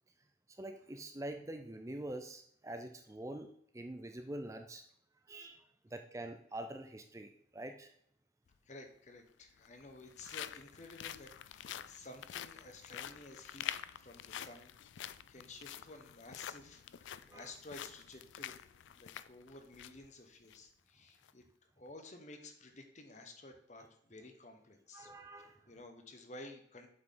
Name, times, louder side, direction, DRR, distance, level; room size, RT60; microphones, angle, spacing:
voice 1, 0.5-4.8 5.3-7.9 17.3-17.5 24.9-25.6, right 1 dB, 15° right, 6 dB, 0.4 m, -45 dB
sound 1, 8.5-8.6 9.5-20.1 20.4-20.6 21.1-21.3, left 10 dB, 80° left, 0.3 m, -47 dB
voice 2, 8.6-13.7 13.9-18.6 18.9-21.4 21.8-25.1 25.7-26.9, left 2 dB, 40° left, 5 dB, 1.0 m, -53 dB
7.8 x 5.6 x 3.9 m, 0.69 s
head